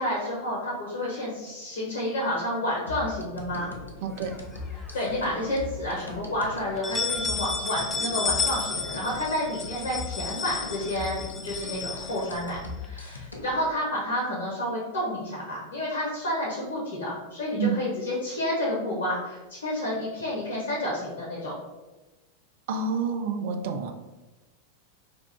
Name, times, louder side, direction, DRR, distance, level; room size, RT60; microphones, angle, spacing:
voice 1, 0.0-3.7 4.9-21.5, left 1 dB, 65° left, -4 dB, 0.8 m, -30 dB
sound 1, 2.9-13.6, left 3 dB, 80° left, 0.5 m, -40 dB
voice 2, 4.0-4.4 17.6-17.8 22.7-23.9, right 5 dB, 50° right, 6 dB, 0.3 m, -28 dB
sound 2, 4.2-5.1 5.5-5.6 6.0-6.1 6.6-12.9, left 4 dB, 15° left, 0.4 m, -32 dB
3.2 x 2.4 x 3.3 m, 1.1 s
figure-of-eight pair, 90°, 0 cm